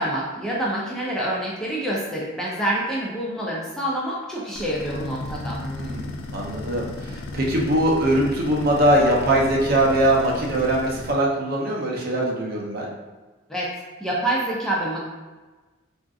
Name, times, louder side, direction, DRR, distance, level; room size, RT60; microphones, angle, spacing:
voice 1, 0.0-5.6 13.5-13.7 14.0-15.0, right 1 dB, 5° left, -5 dB, 0.4 m, -27 dB
sound 1, 4.5-11.1, left 2 dB, 90° left, 0.4 m, -35 dB
voice 2, 5.6-12.9, right 1 dB, 50° right, -2 dB, 0.5 m, -22 dB
3.6 x 2.5 x 2.3 m, 1.3 s
head